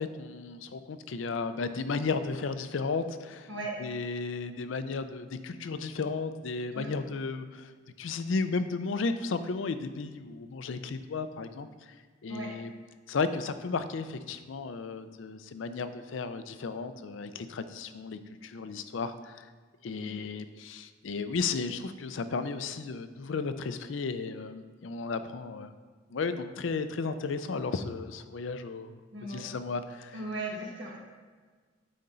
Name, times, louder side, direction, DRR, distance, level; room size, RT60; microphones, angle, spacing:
voice 1, 0.0-3.5 3.8-7.7 8.0-11.7 12.2-12.7 13.1-19.4 19.8-25.7 26.1-30.2, left 4 dB, 75° left, 11 dB, 0.5 m, -34 dB
voice 2, 29.1-29.4 30.1-31.0, right 2 dB, 65° right, -2 dB, 1.6 m, -37 dB
9.2 x 4.3 x 3.9 m, 1.5 s
head